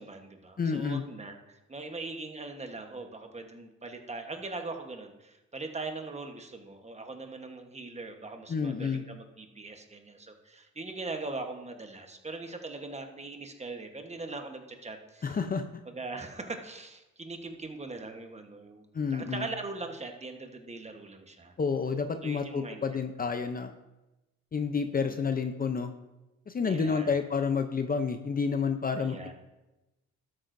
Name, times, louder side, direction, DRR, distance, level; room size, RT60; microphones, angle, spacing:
voice 1, 0.0-15.4 15.8-18.8 19.1-21.5 22.2-22.8 25.0-25.2 26.6-27.1 29.0-29.3, right 3 dB, 20° right, 5 dB, 1.2 m, -41 dB
voice 2, 0.6-1.0 8.5-9.0 15.2-15.6 18.9-19.5 21.6-23.7 24.5-25.9 26.5-29.3, left 5 dB, 30° left, 7 dB, 0.6 m, -29 dB
12.5 x 8.8 x 2.6 m, 1.0 s
cardioid pair, 90°, 30 cm